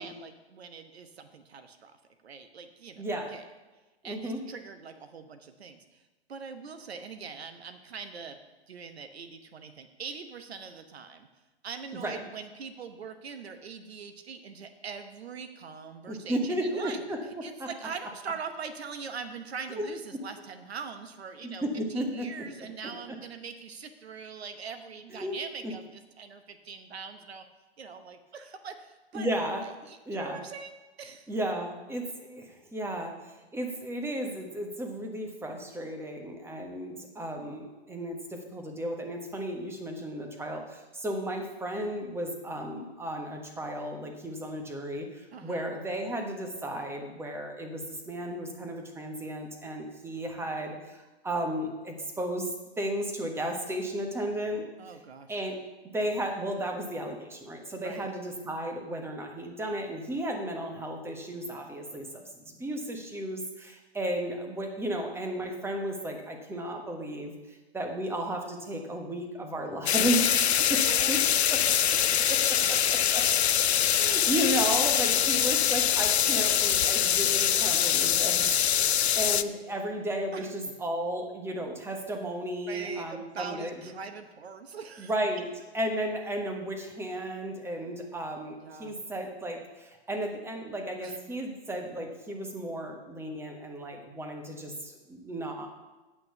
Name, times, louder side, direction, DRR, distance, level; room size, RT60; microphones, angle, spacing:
voice 1, 0.0-1.9 2.2-3.0 3.3-3.4 4.0-6.0 6.3-8.4 8.7-11.3 11.6-17.0 17.4-21.6 21.9-27.4 27.8-29.3 29.9-31.3 45.3-45.7 54.8-55.3 57.8-58.1 70.5-71.6 74.2-74.3 74.9-75.8 76.3-76.4 79.7-79.8 80.3-80.5 82.6-85.1 88.6-89.0 91.0-91.2, right 5 dB, 75° right, 8 dB, 1.0 m, -42 dB
voice 2, 3.0-3.3 4.0-4.4 12.0-12.2 16.1-17.2 17.6-17.7 19.7-19.9 21.4-22.3 25.1-25.4 29.1-29.6 30.1-30.4 31.3-52.5 52.8-54.7 55.3-55.6 55.9-67.3 67.7-70.8 71.1-71.2 71.5-71.7 72.3-73.3 73.9-78.9 79.1-83.7 85.0-85.4 85.7-95.7, right 1 dB, 10° right, 3 dB, 1.3 m, -34 dB
sound 1, 69.9-79.4, left 9 dB, 85° left, 0.5 m, -24 dB
8.6 x 6.1 x 6.9 m, 1.1 s
hypercardioid pair, 115°, 32 cm